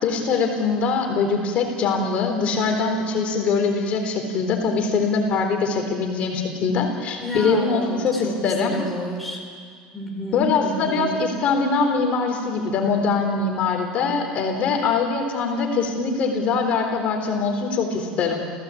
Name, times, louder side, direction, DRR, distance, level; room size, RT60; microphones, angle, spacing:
voice 1, 0.0-8.8 10.3-18.4, left 4 dB, 45° left, 3 dB, 3.9 m, -23 dB
voice 2, 7.2-9.4 9.9-11.2, equal, 5° left, 0 dB, 4.3 m, -29 dB
29.0 x 16.5 x 8.6 m, 2.1 s
cardioid pair, 140°, 3 cm